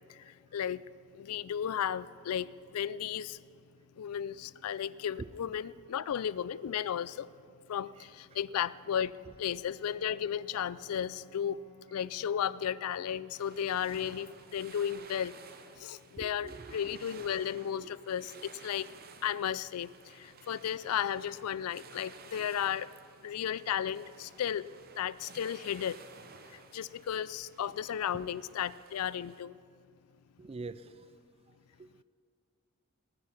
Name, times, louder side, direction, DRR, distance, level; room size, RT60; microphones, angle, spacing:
voice 1, 0.1-0.8 1.1-3.4 4.0-7.3 7.7-11.6 11.9-15.3 15.8-18.9 19.2-22.9 23.2-24.7 25.0-26.0 26.5-29.6, left 9 dB, 80° left, 19 dB, 0.4 m, -34 dB
voice 2, 5.1-5.7 6.0-6.2 6.6-6.7 8.0-8.1 9.3-9.4 15.7-15.8 16.2-16.8 17.7-17.9 18.3-18.4 27.6-27.7 28.1-28.3 30.4-31.1 31.5-32.0, right 3 dB, 25° right, 15 dB, 0.3 m, -47 dB
Bowed string instrument, 8.5-12.9, right 2 dB, 20° left, 3.6 m, -60 dB
sound 1, 13.3-29.4, right 5 dB, 40° right, 0.8 m, -54 dB
19.0 x 9.7 x 5.8 m, 2.3 s
head